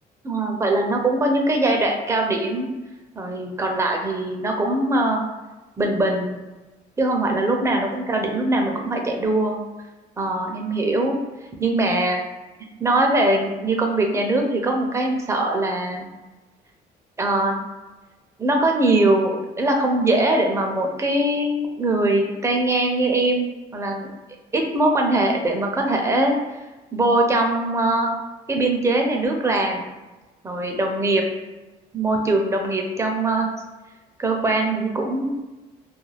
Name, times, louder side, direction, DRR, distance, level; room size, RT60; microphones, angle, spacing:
voice 1, 0.2-2.7 3.2-5.2 5.8-6.4 7.0-9.6 10.2-11.2 11.6-12.2 12.8-16.1 17.2-17.6 18.4-23.5 23.7-24.1 24.5-26.3 26.9-28.1 28.5-29.9 30.4-31.3 31.9-33.5 34.2-35.3, right 2 dB, 15° right, 2 dB, 0.5 m, -21 dB
2.4 x 2.1 x 3.2 m, 1.1 s
cardioid pair, 110°, 17 cm